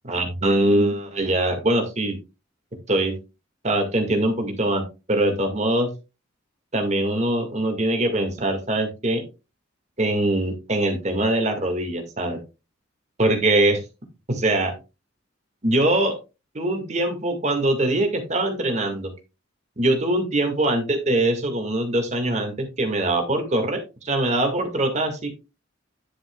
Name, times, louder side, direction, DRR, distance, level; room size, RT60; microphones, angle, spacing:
voice 1, 0.1-2.2 2.9-3.1 3.6-5.9 6.7-9.2 10.0-12.4 13.2-13.8 14.3-14.7 15.6-16.2 16.5-19.1 19.8-25.3, right 1 dB, 35° right, 5 dB, 1.9 m, -22 dB
9.8 x 7.7 x 2.3 m, 0.27 s
head